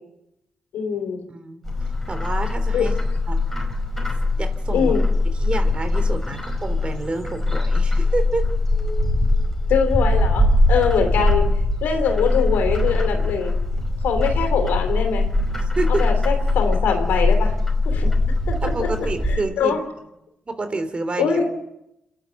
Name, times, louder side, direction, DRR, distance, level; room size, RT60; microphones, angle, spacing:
voice 1, 0.7-1.2 2.7-2.9 4.7-5.0 9.7-11.5 11.8-13.5 14.0-15.3 15.9-17.5 17.8-18.2 18.5-19.1 19.6-19.8 21.2-21.5, left 6 dB, 85° left, 5 dB, 3.1 m, -23 dB
voice 2, 1.3-1.6 2.1-3.4 4.4-5.0 5.4-8.4 15.8-16.0 18.6-19.8 20.5-21.4, right 3 dB, 35° right, 8 dB, 3.6 m, -28 dB
Bird, 1.6-19.4, left 2 dB, 10° left, 5.2 m, -21 dB
27.5 x 11.0 x 9.0 m, 0.87 s
supercardioid pair, 60°, 3 cm